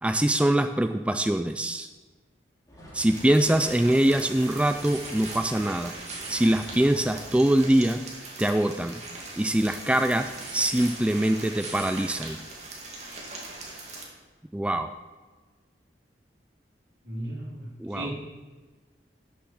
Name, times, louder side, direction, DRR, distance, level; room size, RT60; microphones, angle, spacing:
voice 1, 0.0-1.9 2.9-5.9 6.3-8.0 8.4-9.0 9.4-12.4 14.5-14.9 17.8-18.1, right 1 dB, 5° right, 8 dB, 0.3 m, -23 dB
sound 1, 2.7-7.7, equal, 20° left, 2.3 m, -49 dB
sound 2, 3.0-14.0, right 2 dB, 40° right, 2.2 m, -40 dB
voice 2, 17.0-18.1, right 1 dB, 70° right, -2 dB, 3.0 m, -35 dB
12.5 x 6.7 x 4.9 m, 1.3 s
head